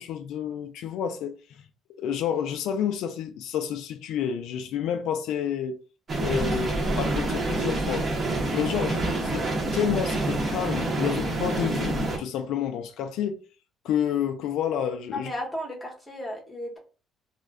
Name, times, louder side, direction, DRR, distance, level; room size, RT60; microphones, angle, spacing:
voice 1, 0.0-1.6 2.0-5.8 6.2-8.1 8.5-9.4 9.7-13.4 13.8-15.3, left 9 dB, 75° left, 0.3 m, -29 dB
sound 1, 6.1-12.2, right 2 dB, 30° right, 0.7 m, -27 dB
voice 2, 15.1-16.8, left 1 dB, 5° left, 0.8 m, -35 dB
2.3 x 2.1 x 3.4 m
cardioid pair, 150°, 0 cm